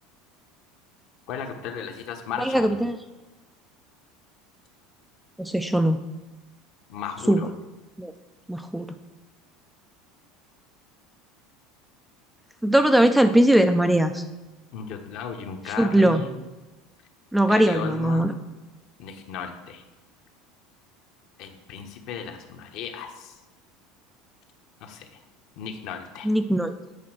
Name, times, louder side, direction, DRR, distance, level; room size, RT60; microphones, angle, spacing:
voice 1, 1.3-2.8 6.9-7.5 14.7-16.3 17.4-18.4 19.0-19.8 21.4-23.4 24.8-25.1 25.6-26.3, left 7 dB, 55° left, 5 dB, 1.0 m, -35 dB
voice 2, 2.4-3.0 5.4-6.0 7.3-7.5 8.0-8.1 8.5-8.9 12.6-14.2 15.8-16.2 17.3-18.3 26.2-26.7, right 1 dB, ahead, 8 dB, 0.3 m, -20 dB
8.5 x 4.2 x 6.0 m, 1.1 s
supercardioid pair, 140°, 0 cm